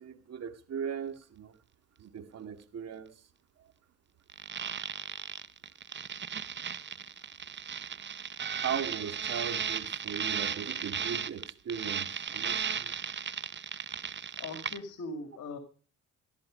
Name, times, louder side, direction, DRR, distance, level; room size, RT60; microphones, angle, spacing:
voice 1, 0.0-1.6 2.0-3.2 8.6-12.9, right 7 dB, 55° right, 7 dB, 2.3 m, -38 dB
sound 1, 4.3-14.8, right 7 dB, 40° right, 0.9 m, -36 dB
voice 2, 14.4-15.6, left 2 dB, 65° left, 9 dB, 2.3 m, -40 dB
14.5 x 12.5 x 5.1 m, 0.37 s
cardioid pair, 90°, 30 cm